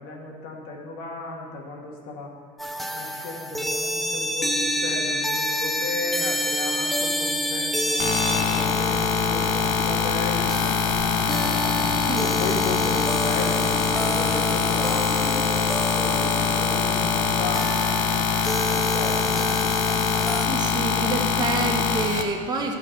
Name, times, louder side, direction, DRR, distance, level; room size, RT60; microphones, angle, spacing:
voice 1, 0.0-2.3 2.9-11.8 12.2-17.7 18.7-19.6, left 3 dB, 80° left, -1 dB, 2.3 m, -35 dB
sound 1, 2.6-20.5, equal, ahead, 0.5 m, -29 dB
sound 2, 8.0-22.2, left 7 dB, 55° left, 1.0 m, -23 dB
voice 2, 20.4-22.7, right 3 dB, 25° right, 1 dB, 1.4 m, -28 dB
13.5 x 4.9 x 7.9 m, 2.1 s
cardioid pair, 120°, 16 cm